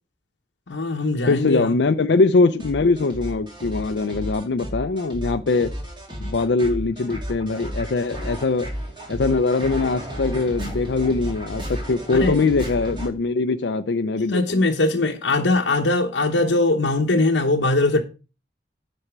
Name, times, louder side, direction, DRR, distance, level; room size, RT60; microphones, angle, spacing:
voice 1, 0.7-1.7 12.1-12.4 14.3-18.0, left 2 dB, 90° left, 0.9 m, -21 dB
voice 2, 1.3-5.7 6.2-8.7 9.1-14.6, left 3 dB, 70° left, 0.5 m, -22 dB
sound 1, 2.6-13.1, equal, 25° right, 2.4 m, -33 dB
9.9 x 4.3 x 6.0 m
head